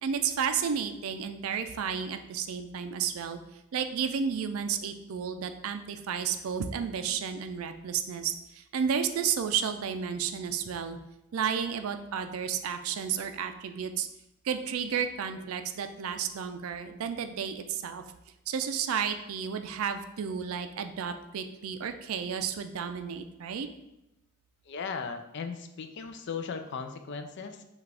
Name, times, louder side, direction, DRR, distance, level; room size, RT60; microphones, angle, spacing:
voice 1, 0.0-3.4 3.7-11.0 11.3-14.1 14.4-18.0 18.5-23.7, right 7 dB, 75° right, 8 dB, 0.4 m, -32 dB
voice 2, 24.7-27.6, left 5 dB, 55° left, 7 dB, 0.4 m, -37 dB
5.8 x 2.4 x 3.3 m, 0.90 s
head